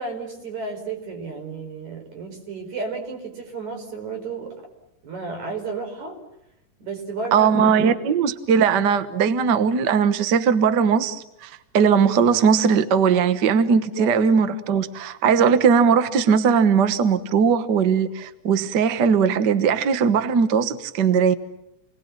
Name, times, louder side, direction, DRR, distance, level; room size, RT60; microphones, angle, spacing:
voice 1, 0.0-4.6 5.0-6.2 6.8-7.9 14.0-14.2, right 4 dB, 55° right, 6.0 m, -32 dB
voice 2, 7.3-21.3, right 6 dB, 75° right, 0.9 m, -19 dB
29.0 x 20.0 x 8.8 m
omnidirectional pair, 3.9 m